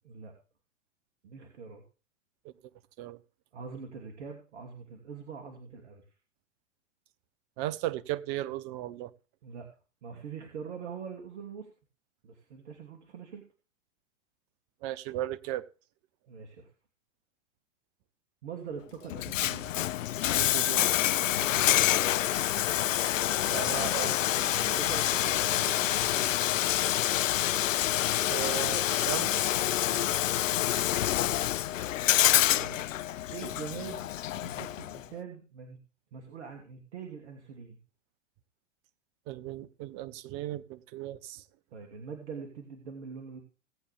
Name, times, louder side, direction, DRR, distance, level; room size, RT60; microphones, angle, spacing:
voice 1, 1.2-1.8 3.5-6.0 9.4-9.7 10.0-11.7 12.2-13.4 16.3-16.7 18.4-19.7 21.3-21.8 24.5-26.3 29.9-30.2 32.5-32.9 33.3-34.0 34.3-35.8 36.1-37.8 41.7-43.4, right 6 dB, 60° right, 3 dB, 2.9 m, -43 dB
voice 2, 7.6-9.1 14.8-15.7 20.4-20.9 23.5-24.2 28.3-29.5 39.3-41.4, right 14 dB, 40° right, 17 dB, 1.0 m, -36 dB
Bathtub (filling or washing), 19.1-35.0, left 12 dB, 80° left, 0.5 m, -27 dB
18.5 x 8.6 x 3.5 m, 0.35 s
hypercardioid pair, 110°, 38 cm